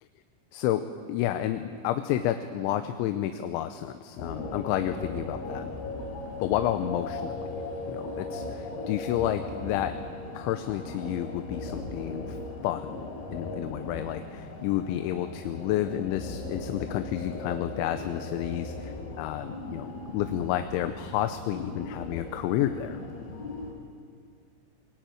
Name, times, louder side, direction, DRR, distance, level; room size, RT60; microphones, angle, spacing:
voice 1, 0.5-5.8 6.4-7.4 7.9-10.0 10.3-12.4 12.6-13.0 13.3-19.9 20.1-23.0, left 12 dB, 85° left, 9 dB, 3.2 m, -30 dB
sound 1, 4.2-23.7, left 2 dB, 60° left, 5.2 m, -38 dB
22.5 x 20.5 x 9.2 m, 2.1 s
omnidirectional pair, 5.3 m